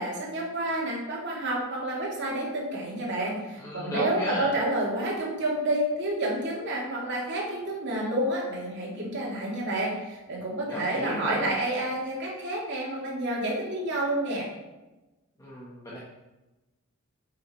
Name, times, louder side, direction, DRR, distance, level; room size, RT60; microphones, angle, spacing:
voice 1, 0.0-14.5, right 1 dB, 50° right, -4 dB, 3.0 m, -29 dB
voice 2, 3.6-4.5 10.7-11.4 15.4-16.0, left 1 dB, 15° left, -7 dB, 1.5 m, -35 dB
8.5 x 7.9 x 4.7 m, 1.1 s
head